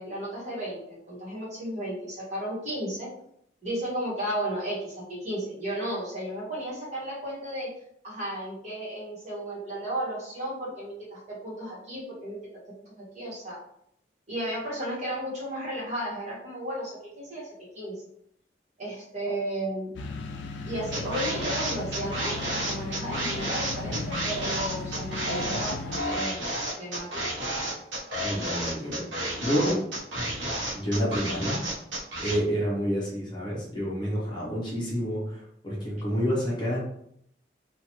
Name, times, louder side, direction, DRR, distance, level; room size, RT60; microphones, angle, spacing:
voice 1, 0.0-3.1 3.6-7.7 8.0-12.4 12.8-13.6 14.3-17.5 17.7-17.9 18.8-20.0 20.7-26.4 26.8-27.1, right 1 dB, 40° right, -6 dB, 1.2 m, -34 dB
sound 1, 20.0-26.0, left 3 dB, 70° left, 0.3 m, -36 dB
sound 2, 20.9-32.4, right 1 dB, 75° right, 0.9 m, -31 dB
voice 2, 28.2-29.8 30.7-31.6 32.2-36.8, equal, 25° left, -5 dB, 0.7 m, -29 dB
2.8 x 2.3 x 2.9 m, 0.72 s
head